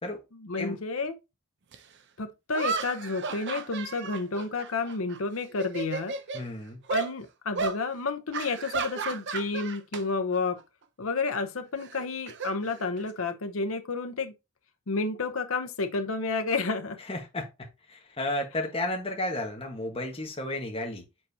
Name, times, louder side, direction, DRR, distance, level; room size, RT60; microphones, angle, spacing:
voice 1, 0.3-1.1 2.2-6.1 6.9-10.6 11.0-14.3 14.9-17.0, left 3 dB, 75° left, 0.8 m, -30 dB
sound 1, 1.7-1.8 2.5-5.2 5.5-6.4 6.9-7.1 7.5-7.8 8.3-10.0 10.3-10.6 11.8-13.2, right 5 dB, 60° right, 0.7 m, -34 dB
voice 2, 6.3-6.8 17.1-21.0, left 1 dB, 25° left, 1.4 m, -33 dB
7.6 x 4.4 x 2.8 m
head